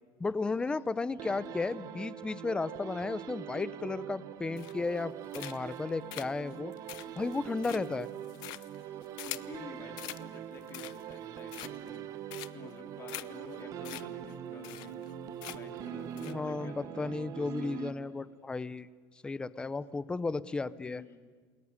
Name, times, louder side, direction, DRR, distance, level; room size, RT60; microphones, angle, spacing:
voice 1, 0.2-6.7 7.2-8.1 16.2-18.9 19.2-21.0, left 3 dB, 10° left, 18 dB, 0.7 m, -34 dB
voice 2, 1.1-1.5 6.3-6.6 7.0-7.9 8.8-12.1 12.5-15.0 15.5-17.1 17.3-18.0 19.6-20.0 20.8-21.2, left 5 dB, 30° left, 6 dB, 3.6 m, -51 dB
sound 1, 1.2-18.4, right 10 dB, 45° right, 1.3 m, -43 dB
sound 2, 4.6-5.0 5.3-5.8 6.1-9.6 10.0-10.2 10.6-11.1 11.5-12.0 12.3-12.7 13.1-13.2 13.5-13.6 13.8-14.0 14.3-14.4 14.6-15.1 15.4-15.8 16.2-16.3, left 19 dB, 60° left, 1.0 m, -43 dB
28.5 x 21.0 x 9.8 m, 1.5 s
cardioid pair, 155°, 8 cm